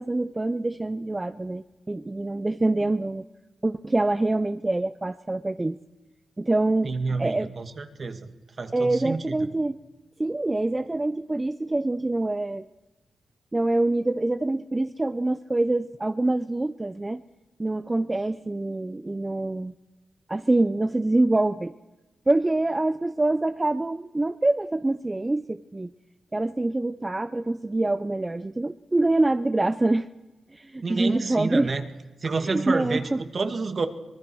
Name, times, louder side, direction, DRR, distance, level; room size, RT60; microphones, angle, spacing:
voice 1, 0.0-3.2 3.6-5.8 6.4-7.5 8.7-9.8 10.2-12.7 13.5-17.2 17.6-19.7 20.3-21.7 22.3-25.9 26.3-30.1 30.5-31.7 32.4-33.2, right 2 dB, 25° right, 11 dB, 0.7 m, -25 dB
voice 2, 6.8-8.3 8.6-9.4 30.8-31.8 32.2-33.9, right 4 dB, 50° right, 8 dB, 2.2 m, -29 dB
24.0 x 20.0 x 6.3 m, 1.1 s
cardioid pair, 65°, 0 cm